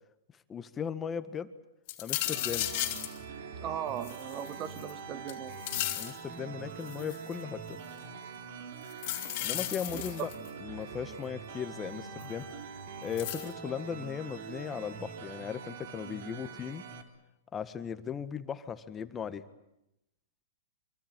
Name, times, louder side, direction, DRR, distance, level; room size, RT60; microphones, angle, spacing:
voice 1, 0.5-1.5 2.0-2.7 6.0-7.8 9.4-10.3 10.6-12.5 13.0-16.9 17.5-19.4, left 7 dB, 20° left, 1.6 m, -37 dB
sound 1, 1.9-3.2 4.0-4.9 5.3-6.2 6.9-7.3 8.9-10.5 12.2-12.3 13.2-13.5, left 16 dB, 50° left, 3.0 m, -35 dB
sound 2, 2.2-17.0, right 5 dB, 60° right, 3.4 m, -44 dB
voice 2, 3.6-5.6 9.9-10.3, right 10 dB, 35° right, 1.2 m, -38 dB
25.5 x 24.0 x 9.1 m
hypercardioid pair, 120°, 0 cm